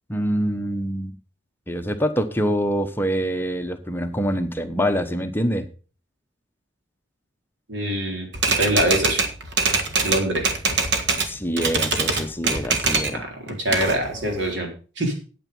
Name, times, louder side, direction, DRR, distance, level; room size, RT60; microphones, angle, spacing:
voice 1, 0.1-1.1 1.7-5.7 11.2-13.2, equal, 10° left, 7 dB, 0.9 m, -25 dB
voice 2, 7.7-8.3 8.6-9.2 10.0-10.5 13.1-14.7 15.0-15.1, right 1 dB, 85° right, 1 dB, 3.9 m, -24 dB
Typewriter, 8.3-11.3 11.6-13.2 13.5-14.5, right 4 dB, 65° right, 1.7 m, -23 dB
9.1 x 8.9 x 5.4 m, 0.37 s
head